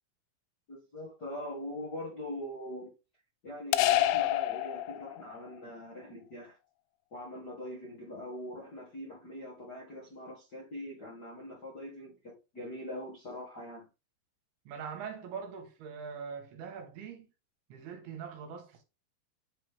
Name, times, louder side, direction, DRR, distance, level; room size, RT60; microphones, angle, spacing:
voice 1, 0.7-2.9 3.4-6.6 7.1-13.9, left 1 dB, 45° left, 1.4 m, -42 dB
sound 1, 3.7-5.4, left 14 dB, 85° left, 2.5 m, -27 dB
voice 2, 14.7-17.3 17.7-18.8, right 6 dB, 75° right, 3.2 m, -42 dB
8.7 x 4.0 x 3.4 m
omnidirectional pair, 4.6 m